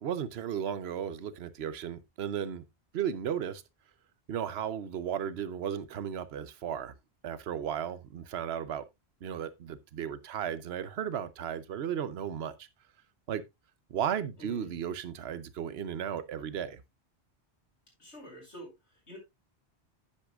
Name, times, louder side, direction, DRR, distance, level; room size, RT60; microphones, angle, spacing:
voice 1, 0.0-2.6 2.9-3.6 4.3-6.9 7.2-8.8 9.2-12.7 13.3-13.4 13.9-16.8, right 9 dB, 70° right, 1.0 m, -35 dB
voice 2, 14.4-14.8 18.0-19.2, equal, 85° left, 5.7 m, -48 dB
10.0 x 9.4 x 2.4 m
omnidirectional pair, 1.1 m